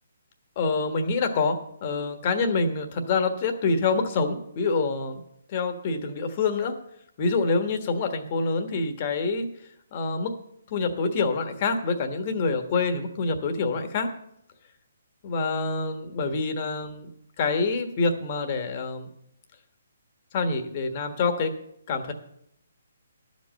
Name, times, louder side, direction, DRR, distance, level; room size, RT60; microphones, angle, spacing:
voice 1, 0.6-5.2 5.5-6.7 7.2-9.5 9.9-10.3 10.7-14.1 15.2-17.1 17.4-19.1 20.3-21.5 21.9-22.1, left 4 dB, 40° left, 6 dB, 1.3 m, -26 dB
11.5 x 5.3 x 7.6 m, 0.74 s
hypercardioid pair, 145°, 0 cm